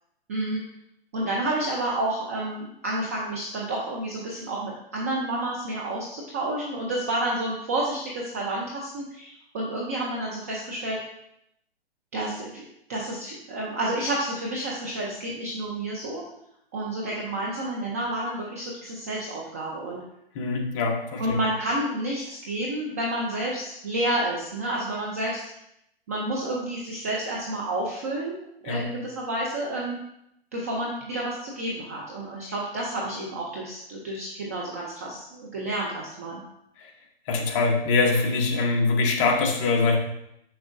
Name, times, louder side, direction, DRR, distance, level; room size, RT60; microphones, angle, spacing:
voice 1, 0.3-0.6 1.1-11.0 12.1-12.6 12.9-16.2 16.7-20.0 21.2-25.4 26.1-30.0 30.5-36.4, right 1 dB, 15° right, -3 dB, 0.4 m, -30 dB
voice 2, 20.3-21.4 28.6-28.9 36.8-36.9 37.3-40.0, left 3 dB, 30° left, 1 dB, 1.0 m, -23 dB
6.7 x 6.2 x 2.5 m, 0.77 s
hypercardioid pair, 155°, 31 cm